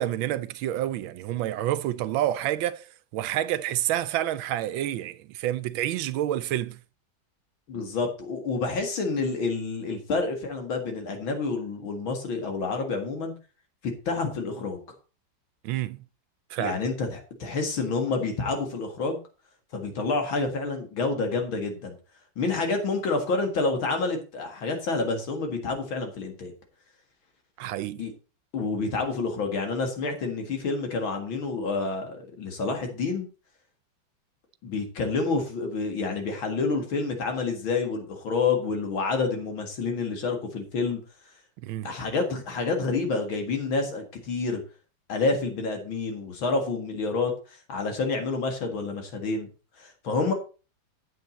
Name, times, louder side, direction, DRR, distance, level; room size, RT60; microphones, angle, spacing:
voice 1, 0.0-2.9 3.1-6.8 15.6-16.0 16.5-16.8 27.6-28.0 41.6-41.9, right 12 dB, 80° right, 1.4 m, -28 dB
voice 2, 7.7-13.3 14.1-14.8 16.6-19.2 19.7-22.0 22.4-26.5 28.0-28.1 28.5-33.3 34.6-41.0 41.8-44.6 45.1-47.3 47.7-49.5 49.8-50.3, left 3 dB, 80° left, 2.7 m, -28 dB
8.4 x 8.2 x 4.0 m
omnidirectional pair, 2.2 m